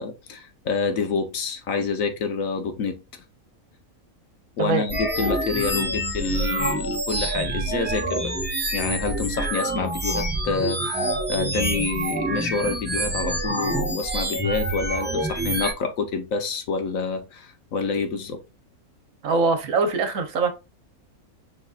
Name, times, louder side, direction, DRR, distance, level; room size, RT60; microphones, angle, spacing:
voice 1, 0.0-3.0 4.6-8.3 8.7-18.4, left 4 dB, 70° left, 1.3 m, -28 dB
sound 1, 4.9-15.7, right 1 dB, 10° right, 0.8 m, -26 dB
voice 2, 19.2-20.5, right 4 dB, 70° right, 1.3 m, -22 dB
5.1 x 4.0 x 2.4 m
omnidirectional pair, 1.5 m